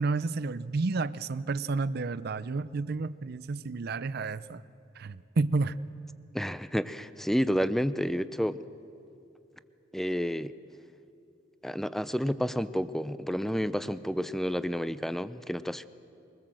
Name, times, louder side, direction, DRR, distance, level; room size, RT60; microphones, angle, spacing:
voice 1, 0.0-4.6 5.0-5.8, right 3 dB, 55° right, 16 dB, 0.5 m, -30 dB
voice 2, 6.3-8.6 9.9-10.5 11.6-15.9, equal, ahead, 14 dB, 0.5 m, -30 dB
22.0 x 20.0 x 7.6 m, 2.7 s
head